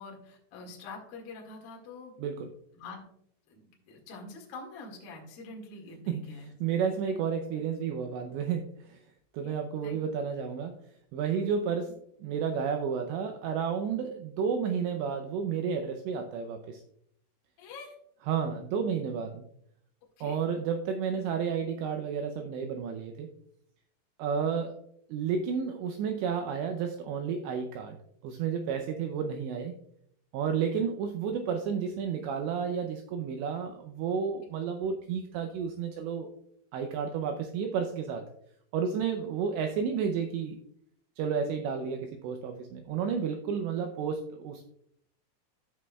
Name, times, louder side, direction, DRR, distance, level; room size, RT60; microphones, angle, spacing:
voice 1, 0.0-2.1 2.7-3.0 3.5-6.5 9.4-9.6 9.8-10.0 17.6-17.9 20.2-20.4, left 3 dB, 55° left, -2 dB, 3.0 m, -45 dB
voice 2, 6.1-9.0 9.3-10.8 11.1-11.9 12.2-16.8 18.3-19.4 20.2-23.3 24.2-24.8 25.1-28.0 28.2-29.7 30.3-36.3 36.7-38.2 38.7-40.6 41.2-44.6, right 6 dB, 85° right, 4 dB, 2.5 m, -31 dB
14.5 x 6.2 x 2.3 m, 0.70 s
omnidirectional pair, 5.8 m